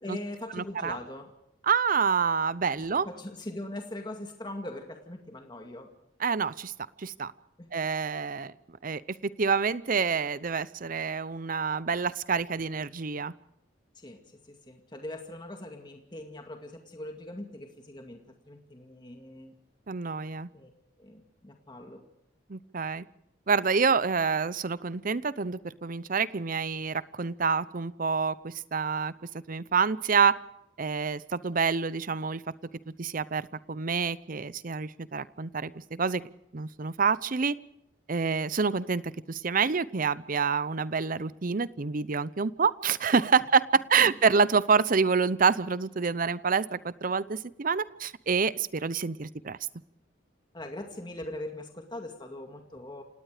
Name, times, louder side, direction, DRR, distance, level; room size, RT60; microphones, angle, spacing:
voice 1, 0.0-1.3 2.7-5.9 7.6-7.7 14.0-19.5 20.5-20.7 21.0-22.1 44.0-44.1 50.5-53.0, left 1 dB, 25° left, 3 dB, 2.1 m, -41 dB
voice 2, 0.5-1.0 1.7-3.1 6.2-6.7 7.0-7.3 7.7-8.5 8.8-13.3 19.9-20.5 22.5-23.0 23.5-29.1 29.5-30.4 30.8-32.4 33.0-36.2 36.5-37.5 38.1-49.6, right 5 dB, 45° right, 17 dB, 0.7 m, -27 dB
28.5 x 18.5 x 5.0 m, 0.81 s
head